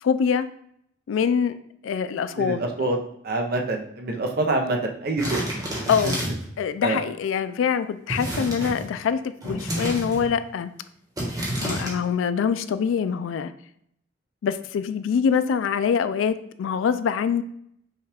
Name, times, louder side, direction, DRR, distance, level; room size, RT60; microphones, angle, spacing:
voice 1, 0.0-0.5 1.1-1.6 1.8-2.6 5.9-6.2 6.6-10.7 11.6-13.5 14.4-17.4, left 7 dB, 90° left, 12 dB, 0.3 m, -24 dB
voice 2, 2.3-3.0 3.2-5.4 6.0-6.1 6.8-7.0, right 2 dB, 50° right, 2 dB, 0.6 m, -26 dB
sound 1, 5.2-6.5 8.1-8.9 9.4-10.3 11.2-11.9, right 1 dB, 20° right, 1.1 m, -29 dB
5.5 x 2.3 x 3.4 m, 0.70 s
head